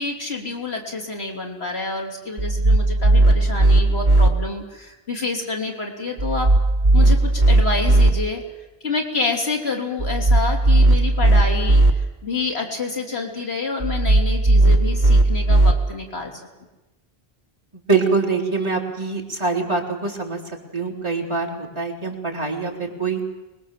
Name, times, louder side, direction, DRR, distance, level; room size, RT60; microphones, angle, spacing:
voice 1, 0.0-6.5 6.9-8.4 8.8-16.3, left 3 dB, 85° left, 1 dB, 3.8 m, -28 dB
sound 1, 2.4-4.3 6.2-8.1 10.0-11.9 13.8-15.7, right 2 dB, 45° right, 1.7 m, -16 dB
voice 2, 17.7-20.4 20.7-23.2, right 4 dB, 25° right, -3 dB, 4.0 m, -24 dB
25.0 x 21.5 x 7.6 m, 1.1 s
omnidirectional pair, 1.1 m